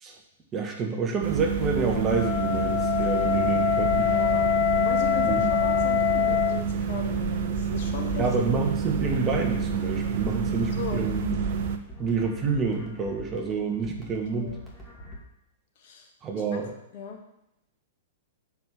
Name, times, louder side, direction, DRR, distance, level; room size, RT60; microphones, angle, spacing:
voice 1, 0.5-4.2 5.2-5.4 8.2-11.4 12.0-14.6 16.2-16.7, right 4 dB, 20° right, 1 dB, 1.4 m, -28 dB
sound 1, 1.2-11.8, right 6 dB, 50° right, 0.8 m, -28 dB
Wind instrument woodwind instrument, 2.0-6.6, left 11 dB, 30° left, 0.6 m, -25 dB
voice 2, 4.1-4.5 4.8-8.3 10.7-11.0 14.4-14.6 15.8-16.1 16.5-16.6 16.9-17.2, left 5 dB, 50° left, 3 dB, 1.4 m, -37 dB
sound 2, 8.8-15.2, equal, 5° left, 2.3 m, -45 dB
6.8 x 5.0 x 5.9 m, 0.83 s
figure-of-eight pair, 105°, 0 cm